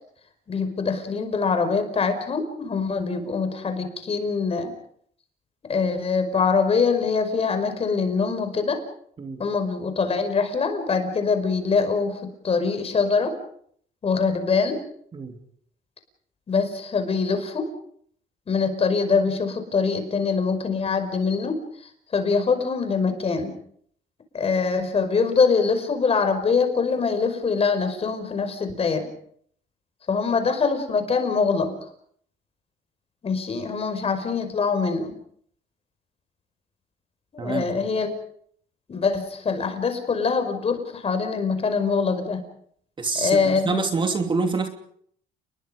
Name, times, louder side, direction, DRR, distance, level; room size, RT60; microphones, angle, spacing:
voice 1, 0.5-4.7 5.7-8.8 9.4-13.4 14.0-14.8 16.5-17.7 18.5-23.5 24.3-29.1 30.1-31.7 33.2-35.1 37.3-38.1 38.9-42.4 43.1-43.8, left 5 dB, 35° left, 8 dB, 5.3 m, -24 dB
voice 2, 43.0-44.7, right 4 dB, 30° right, 5 dB, 2.8 m, -26 dB
30.0 x 21.5 x 5.2 m, 0.64 s
cardioid pair, 110°, 17 cm